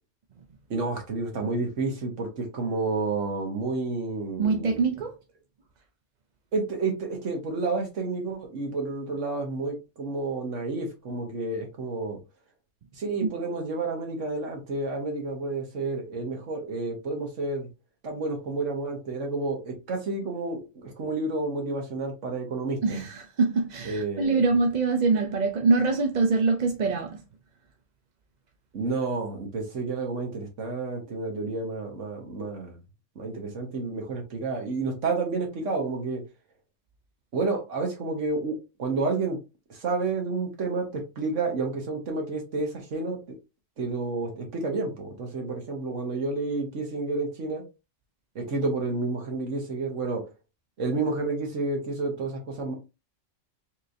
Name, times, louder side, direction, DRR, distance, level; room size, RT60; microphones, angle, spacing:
voice 1, 0.7-4.8 6.5-12.2 13.0-17.7 18.0-23.0 23.8-24.5 28.7-32.8 33.1-36.2 37.3-38.5 38.8-39.4 39.7-43.2 43.8-47.6 48.3-50.2 50.8-52.7, right 3 dB, 75° right, 1.6 m, -30 dB
voice 2, 4.4-5.1 13.2-13.3 22.8-27.2, right 4 dB, 50° right, 0.6 m, -24 dB
4.4 x 3.1 x 2.6 m
omnidirectional pair, 1.3 m